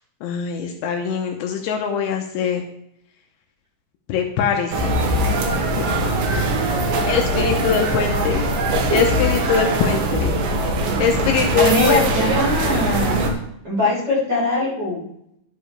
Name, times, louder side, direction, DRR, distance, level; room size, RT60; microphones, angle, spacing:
voice 1, 0.2-2.6 4.1-5.0 5.8-5.9 7.1-8.5 8.9-10.4 11.0-12.3, left 6 dB, 80° left, 3 dB, 3.1 m, -22 dB
sound 1, 4.7-13.3, right 1 dB, 70° right, 3.4 m, -21 dB
voice 2, 11.6-13.2 13.6-15.0, left 2 dB, 25° right, -6 dB, 4.4 m, -21 dB
12.0 x 9.9 x 3.3 m, 0.74 s
omnidirectional pair, 5.7 m